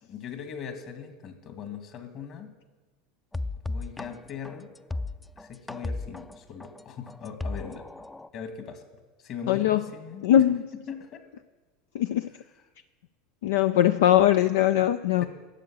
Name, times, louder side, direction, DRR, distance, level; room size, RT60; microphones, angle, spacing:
voice 1, 0.0-2.5 3.7-4.7 5.4-7.8 8.3-8.8 9.2-10.3 10.9-11.2, left 7 dB, 50° left, 6 dB, 2.0 m, -40 dB
sound 1, 3.3-8.3, left 2 dB, 10° left, 0.5 m, -34 dB
voice 2, 9.5-9.8 10.2-10.7 11.9-12.3 13.4-15.2, left 11 dB, 75° left, 10 dB, 0.4 m, -21 dB
11.5 x 7.5 x 8.6 m, 1.3 s
hypercardioid pair, 90°, 0 cm